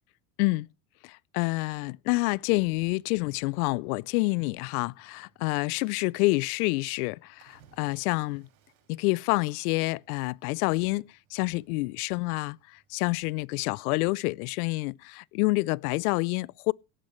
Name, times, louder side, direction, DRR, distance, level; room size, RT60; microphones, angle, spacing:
voice 1, 1.0-8.5 8.9-16.7, left 24 dB, 75° left, 0.6 m, -28 dB
Cricket / Waves surf, 2.5-13.7, right 8 dB, 85° right, 6.1 m, -67 dB
17.5 x 12.0 x 3.1 m
supercardioid pair, 115°, 44 cm